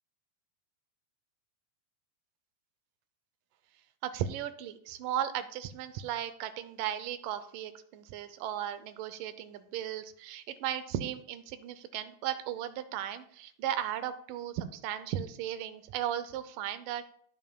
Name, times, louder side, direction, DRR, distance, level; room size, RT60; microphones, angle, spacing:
voice 1, 4.0-17.0, right 11 dB, 90° right, 12 dB, 2.3 m, -36 dB
17.0 x 5.7 x 2.2 m, 0.62 s
omnidirectional pair, 3.8 m